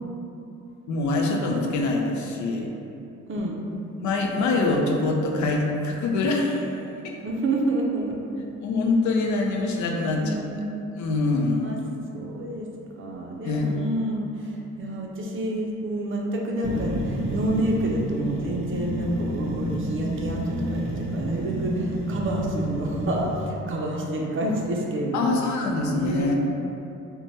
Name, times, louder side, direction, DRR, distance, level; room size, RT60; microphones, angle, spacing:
voice 1, 0.9-2.7 4.0-6.7 7.0-7.2 8.6-10.4 11.0-11.8 13.4-13.7 25.1-26.3, left 3 dB, 75° left, 1 dB, 0.5 m, -24 dB
voice 2, 3.3-3.6 7.2-8.2 10.2-10.7 11.6-11.8 12.1-12.7 13.0-25.4 25.9-26.3, right 1 dB, 45° right, -1 dB, 0.5 m, -29 dB
sound 1, 16.6-23.4, right 1 dB, 90° right, 0.7 m, -29 dB
3.1 x 2.1 x 2.6 m, 2.7 s
cardioid pair, 90°, 30 cm